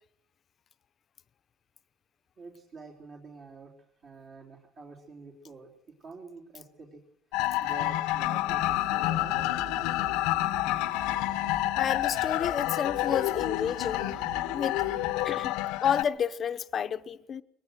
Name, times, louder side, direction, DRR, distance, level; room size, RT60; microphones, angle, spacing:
voice 1, 2.4-3.7 4.0-5.7 6.0-7.0 7.6-10.0, right 4 dB, 45° right, 3.6 m, -47 dB
sound 1, 7.3-16.0, left 16 dB, 90° left, 0.9 m, -29 dB
sound 2, 8.5-15.1, right 5 dB, 70° right, 2.7 m, -46 dB
voice 2, 10.3-10.8 11.8-14.1 14.5-14.9 15.2-17.4, left 8 dB, 35° left, 0.8 m, -31 dB
22.0 x 19.0 x 6.5 m
cardioid pair, 140°, 0 cm